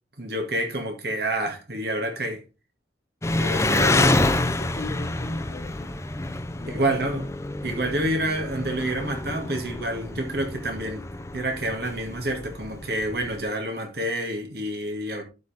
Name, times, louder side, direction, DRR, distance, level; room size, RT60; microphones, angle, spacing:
voice 1, 0.2-2.5 3.4-4.0 6.7-7.2 7.6-11.1 11.3-15.2, right 1 dB, 60° right, 2.1 m, -28 dB
Engine, 3.2-13.4, left 2 dB, 15° left, 0.6 m, -27 dB
voice 2, 3.6-5.9 6.5-7.2, left 2 dB, 45° left, 3.8 m, -39 dB
12.0 x 5.3 x 3.4 m
head